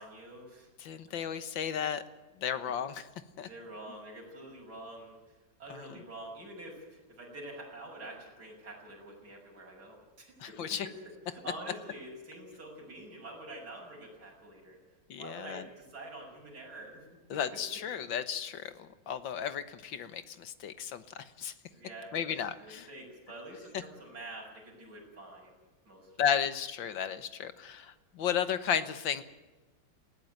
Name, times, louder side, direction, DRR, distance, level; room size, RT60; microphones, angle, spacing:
voice 1, 0.0-0.7 1.1-1.2 2.5-2.6 3.4-10.9 11.3-14.8 15.2-17.1 21.7-22.2 22.6-25.6 25.8-26.1, right 1 dB, 50° right, -2 dB, 6.6 m, -47 dB
voice 2, 0.8-2.0 2.4-3.1 3.4-3.5 5.7-6.0 10.4-10.9 15.1-15.6 17.3-21.5 22.1-22.9 26.2-29.2, left 8 dB, 70° left, 12 dB, 1.9 m, -34 dB
20.5 x 16.5 x 9.2 m, 1.2 s
omnidirectional pair, 2.2 m